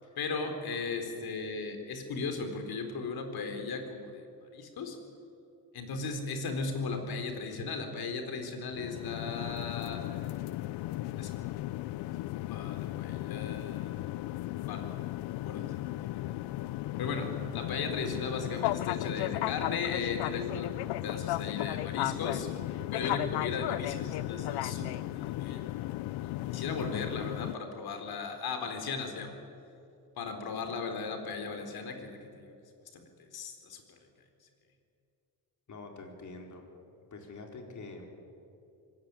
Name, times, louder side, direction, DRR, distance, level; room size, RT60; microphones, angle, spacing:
voice 1, 0.2-4.3 4.5-5.0 5.7-10.3 11.2-11.5 12.5-14.1 14.7-15.0 15.3-15.8 17.0-17.3 17.5-22.5 22.9-25.7 26.2-29.4 30.2-32.5 32.9-34.0, left 4 dB, 65° left, 5 dB, 4.2 m, -37 dB
sound 1, 8.7-27.6, left 16 dB, 90° left, 0.6 m, -35 dB
voice 2, 35.7-36.6 37.1-38.1, left 3 dB, 45° left, 2 dB, 4.6 m, -46 dB
24.5 x 16.5 x 9.8 m, 2.6 s
cardioid pair, 105°, 40 cm